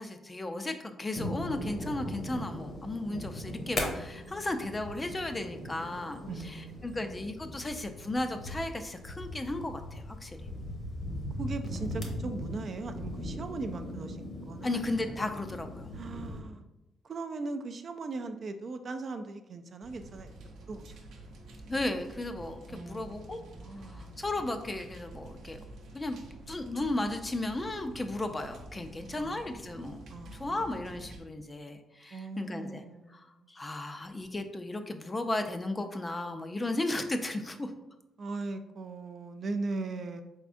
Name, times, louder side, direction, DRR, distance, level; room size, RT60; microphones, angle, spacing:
voice 1, 0.0-10.4 14.6-15.9 21.7-25.6 25.9-26.2 26.5-30.0 30.3-32.8 33.1-37.7, left 2 dB, 20° left, 7 dB, 0.4 m, -35 dB
sound 1, 1.1-16.4, left 1 dB, 45° left, 0.9 m, -39 dB
voice 2, 6.3-7.1 11.4-14.8 15.9-16.6 17.0-21.1 22.7-24.2 29.2-29.6 30.1-30.9 32.1-33.5 38.2-40.2, right 3 dB, 45° right, 7 dB, 0.3 m, -39 dB
sound 2, 19.8-31.2, right 1 dB, 75° right, 0.7 m, -48 dB
4.1 x 3.5 x 2.5 m, 0.93 s
cardioid pair, 90°, 0 cm